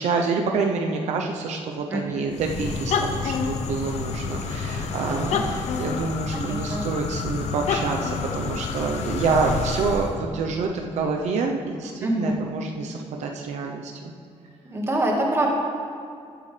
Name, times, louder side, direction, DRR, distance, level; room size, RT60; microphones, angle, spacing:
voice 1, 0.0-14.1, right 4 dB, 80° right, 2 dB, 0.8 m, -27 dB
voice 2, 1.9-2.2 4.9-5.4 6.3-6.8 12.0-12.4 14.7-15.5, right 1 dB, 20° right, -1 dB, 1.8 m, -26 dB
sound 1, 2.3-10.2, left 5 dB, 75° left, 0.8 m, -28 dB
14.5 x 8.6 x 3.4 m, 2.4 s
cardioid pair, 125°, 12 cm